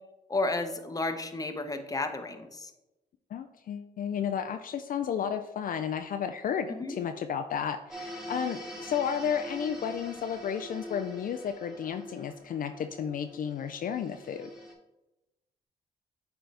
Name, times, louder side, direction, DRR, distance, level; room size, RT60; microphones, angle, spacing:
voice 1, 0.3-2.7 6.8-7.0, left 2 dB, 20° left, 7 dB, 0.9 m, -32 dB
voice 2, 3.3-14.5, left 8 dB, 55° left, 7 dB, 0.4 m, -32 dB
sound 1, 7.9-14.7, left 1 dB, 5° right, 2.0 m, -44 dB
7.8 x 3.9 x 3.4 m, 1.0 s
supercardioid pair, 65°, 17 cm